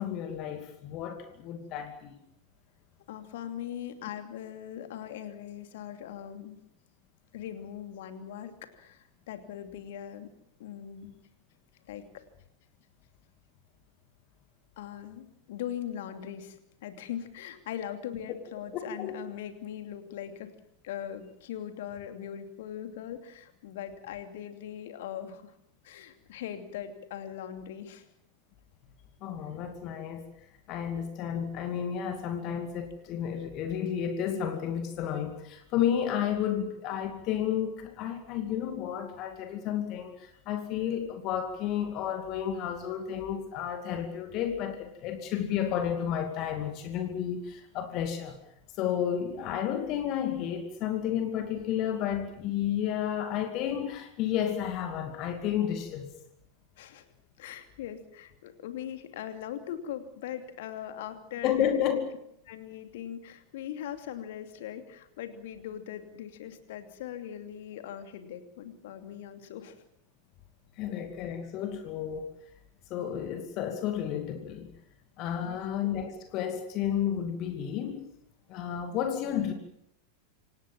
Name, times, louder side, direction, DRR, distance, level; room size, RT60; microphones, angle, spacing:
voice 1, 0.0-2.1 18.7-19.1 29.2-30.2 30.7-48.4 48.8-56.1 61.4-62.1 70.8-72.3 72.9-74.7 75.2-78.1 78.5-79.5, left 9 dB, 40° left, 7 dB, 2.4 m, -31 dB
voice 2, 3.1-6.6 7.3-10.3 10.6-11.2 11.9-12.2 14.8-16.6 16.8-20.5 20.8-25.5 25.8-28.0 56.8-57.1 57.4-61.7 62.5-69.8 75.4-75.6, left 10 dB, 55° left, 8 dB, 2.7 m, -40 dB
27.0 x 18.0 x 7.4 m, 0.73 s
figure-of-eight pair, 90°, 0 cm